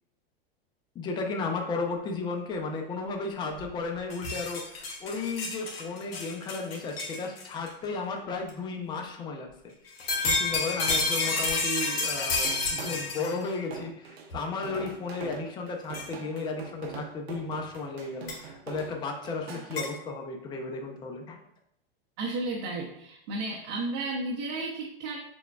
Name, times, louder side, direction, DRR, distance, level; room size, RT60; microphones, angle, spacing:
voice 1, 0.9-9.7 10.2-21.4, left 4 dB, 15° left, 2 dB, 0.4 m, -34 dB
sound 1, 3.6-3.7 4.0-7.7 8.5-8.6 9.9-13.4 14.3-14.4 15.9-16.1 18.3-18.4 19.8-19.9, left 3 dB, 75° left, 1.0 m, -30 dB
sound 2, 12.4-19.8, right 5 dB, 85° right, 0.8 m, -42 dB
voice 2, 22.2-25.2, right 2 dB, 50° right, -3 dB, 0.7 m, -33 dB
6.0 x 2.2 x 2.2 m, 0.75 s
hypercardioid pair, 120°, 30 cm